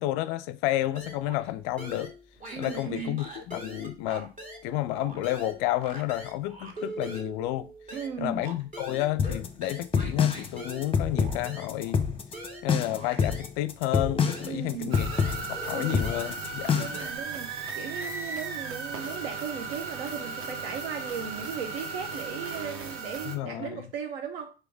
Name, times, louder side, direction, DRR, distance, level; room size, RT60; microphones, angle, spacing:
voice 1, 0.0-2.1 2.6-4.3 4.6-7.7 8.2-12.0 12.6-15.1 15.4-16.9 23.3-23.8, left 15 dB, 50° left, 0.5 m, -31 dB
sound 1, 1.0-1.5 1.8-4.7 5.0-13.6 13.9-17.1, right 1 dB, 25° right, 2.1 m, -43 dB
voice 2, 2.5-3.2 7.9-8.4 14.4-14.9 15.7-16.0 16.8-24.5, right 7 dB, 65° right, 0.9 m, -37 dB
sound 2, 9.2-17.1, left 6 dB, 15° left, 0.9 m, -27 dB
sound 3, 14.9-23.4, right 4 dB, 40° right, 1.2 m, -36 dB
4.8 x 4.6 x 4.9 m
figure-of-eight pair, 70°, 32 cm